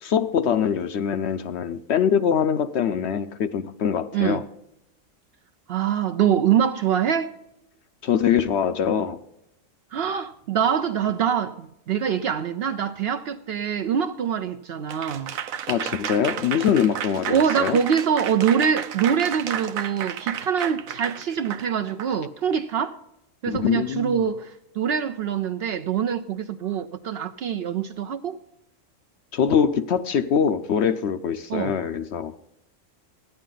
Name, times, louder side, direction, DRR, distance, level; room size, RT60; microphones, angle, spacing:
voice 1, 0.0-4.4 8.0-9.2 15.7-17.8 23.5-24.2 29.3-32.3, left 8 dB, 65° left, 0.8 m, -23 dB
voice 2, 5.7-7.3 9.9-15.3 17.3-23.0 23.4-28.4 31.5-31.7, right 8 dB, 65° right, 0.6 m, -24 dB
Applause / Crowd, 14.9-22.1, right 9 dB, 90° right, 1.1 m, -32 dB
14.5 x 10.0 x 3.8 m
omnidirectional pair, 1.4 m